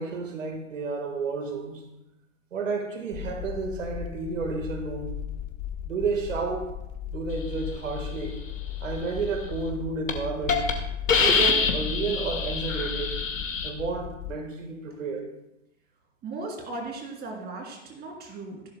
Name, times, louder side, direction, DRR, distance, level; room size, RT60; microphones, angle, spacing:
voice 1, 0.0-1.9 2.5-5.1 5.8-6.7 7.0-8.4 8.8-10.6 11.2-13.2 13.6-15.2, right 4 dB, 80° right, 4 dB, 1.6 m, -31 dB
sound 1, 3.1-14.4, left 9 dB, 30° left, 0.7 m, -36 dB
Hiss, 9.5-9.7 10.1-10.2 10.5-10.7 11.1-13.7, left 5 dB, 85° left, 1.8 m, -25 dB
voice 2, 16.2-18.6, right 2 dB, 25° right, 1 dB, 2.8 m, -37 dB
16.0 x 11.5 x 2.2 m, 0.89 s
hypercardioid pair, 115°, 38 cm